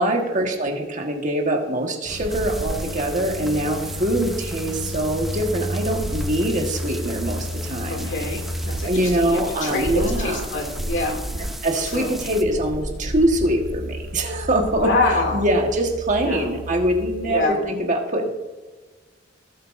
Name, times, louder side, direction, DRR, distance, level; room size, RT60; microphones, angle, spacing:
voice 1, 0.0-8.1 8.8-10.5 11.6-14.9 15.3-18.3, right 1 dB, 40° right, 2 dB, 1.5 m, -23 dB
sound 1, 2.1-17.6, equal, 85° right, 1.6 m, -32 dB
sound 2, 2.3-12.4, equal, ahead, 0.6 m, -38 dB
voice 2, 7.9-11.6 11.9-12.1 14.7-15.4 16.2-16.5 17.2-17.6, left 3 dB, 65° left, 1 dB, 2.5 m, -26 dB
18.5 x 7.8 x 2.6 m, 1.3 s
head